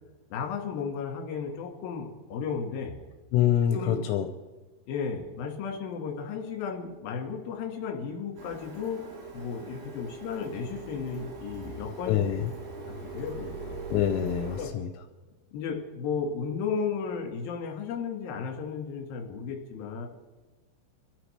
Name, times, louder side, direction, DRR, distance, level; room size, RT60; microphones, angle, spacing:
voice 1, 0.3-3.0 3.6-4.0 4.9-9.0 9.3-12.5 13.1-13.8 14.6-14.7 15.5-20.1, left 6 dB, 60° left, 1 dB, 3.1 m, -34 dB
voice 2, 3.3-4.3 12.1-12.5 13.9-14.9, left 10 dB, 80° left, 6 dB, 3.2 m, -25 dB
Printer, 8.4-14.7, right 3 dB, 55° right, 4.3 m, -42 dB
26.5 x 13.0 x 3.3 m, 1.2 s
omnidirectional pair, 5.9 m